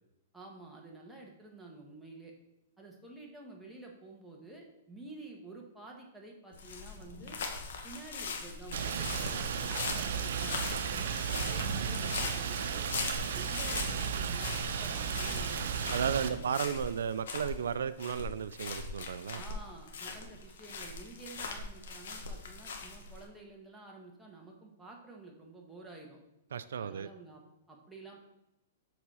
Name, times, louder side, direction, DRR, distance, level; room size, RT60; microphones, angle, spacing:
voice 1, 0.3-2.3 2.8-7.4 7.8-12.9 13.3-16.7 19.3-26.2 26.8-27.4 27.7-28.2, right 2 dB, 5° right, -2 dB, 1.3 m, -50 dB
sound 1, 6.5-23.2, left 4 dB, 75° left, 1.2 m, -41 dB
Rain, 8.7-16.3, right 6 dB, 70° right, 0.7 m, -34 dB
voice 2, 15.9-19.4 26.5-27.1, right 7 dB, 90° right, 14 dB, 0.3 m, -34 dB
7.2 x 4.1 x 4.8 m, 0.88 s
hypercardioid pair, 145°, 0 cm